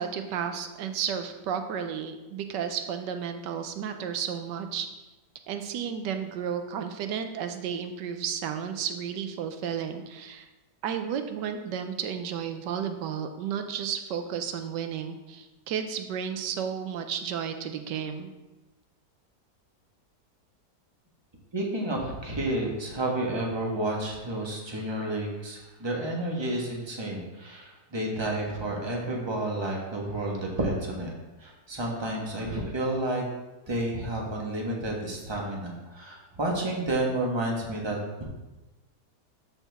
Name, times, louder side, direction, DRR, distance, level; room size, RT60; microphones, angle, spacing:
voice 1, 0.0-4.9 5.5-10.5 10.8-18.3, right 8 dB, 90° right, 7 dB, 1.3 m, -32 dB
voice 2, 21.5-31.1 31.4-33.2 33.7-38.2, right 1 dB, 15° right, -1 dB, 1.3 m, -30 dB
12.5 x 4.3 x 3.5 m, 1.1 s
omnidirectional pair, 1.8 m